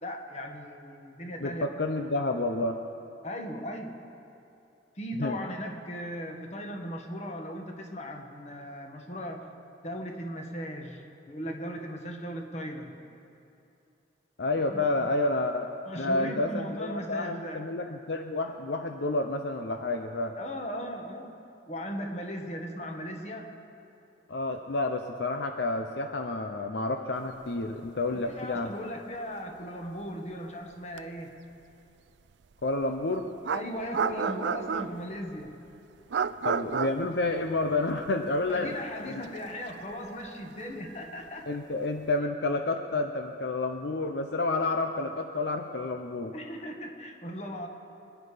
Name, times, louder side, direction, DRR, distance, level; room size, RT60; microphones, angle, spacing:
voice 1, 0.0-1.7 3.2-4.0 4.9-9.5 9.8-13.0 14.7-15.1 15.8-17.6 20.4-21.4 21.7-23.6 28.1-31.5 33.5-35.6 38.5-41.5 46.3-47.7, equal, 40° left, 3 dB, 1.5 m, -38 dB
voice 2, 1.4-2.8 5.2-5.4 14.4-15.7 16.0-20.4 24.3-28.7 32.6-33.3 36.4-38.7 39.1-39.2 41.5-46.3, left 2 dB, 65° left, 5 dB, 0.7 m, -30 dB
sound 1, 28.3-28.4 28.6-28.8 31.0-31.1 32.8-32.9 33.4-35.2 36.1-38.1 38.4-38.5 39.2-41.6, right 6 dB, 75° right, 0.4 m, -32 dB
25.0 x 10.0 x 5.1 m, 2.8 s
head